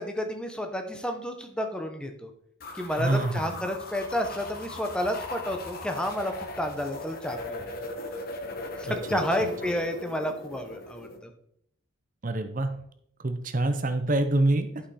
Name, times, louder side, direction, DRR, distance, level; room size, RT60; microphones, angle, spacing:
voice 1, 0.0-2.3 2.7-7.7 8.8-11.3, equal, 5° left, 5 dB, 0.8 m, -31 dB
sound 1, 2.6-11.2, left 2 dB, 45° left, 1.2 m, -39 dB
voice 2, 3.0-3.6 8.9-9.5 12.2-12.7 13.2-14.9, right 2 dB, 40° right, 9 dB, 0.7 m, -27 dB
11.5 x 5.7 x 4.2 m, 0.69 s
head